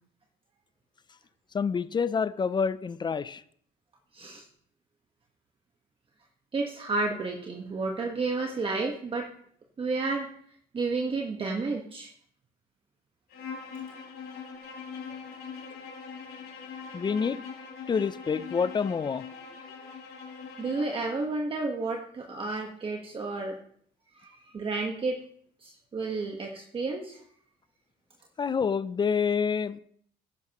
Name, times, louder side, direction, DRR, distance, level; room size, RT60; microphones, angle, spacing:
voice 1, 1.5-3.4 16.9-17.4 17.9-19.2 28.4-29.8, left 6 dB, 25° left, 0.5 m, -27 dB
voice 2, 4.1-4.4 6.5-9.3 9.8-10.3 10.7-12.1 20.6-23.6 24.2-25.2 25.6-27.2, right 3 dB, 30° right, 1.4 m, -31 dB
Bowed string instrument, 13.3-21.2, left 6 dB, 70° left, 4.0 m, -42 dB
13.5 x 10.5 x 3.0 m
cardioid pair, 110°, 17 cm